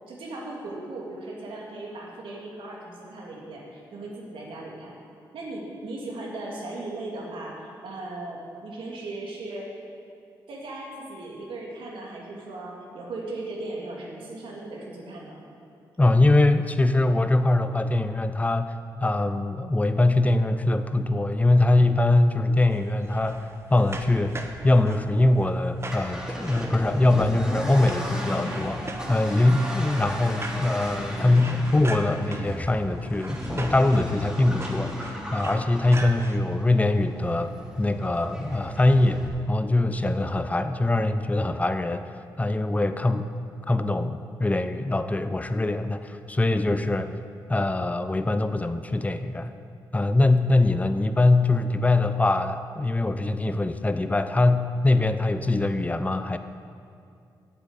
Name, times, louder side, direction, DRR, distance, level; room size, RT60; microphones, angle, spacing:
voice 1, 0.1-4.9 5.3-9.7 10.5-15.4, right 2 dB, 75° right, -2 dB, 2.5 m, -37 dB
voice 2, 16.0-24.4 24.6-28.8 29.1-42.1 42.4-43.3 43.6-47.1 47.5-49.5 49.9-56.4, left 2 dB, 15° left, 10 dB, 0.7 m, -23 dB
sound 1, 22.7-36.4, right 2 dB, 30° right, 1.3 m, -41 dB
Accelerating revving vroom, 25.8-39.3, equal, 5° right, 3.1 m, -35 dB
9.2 x 8.2 x 8.2 m, 2.4 s
supercardioid pair, 50°, 9 cm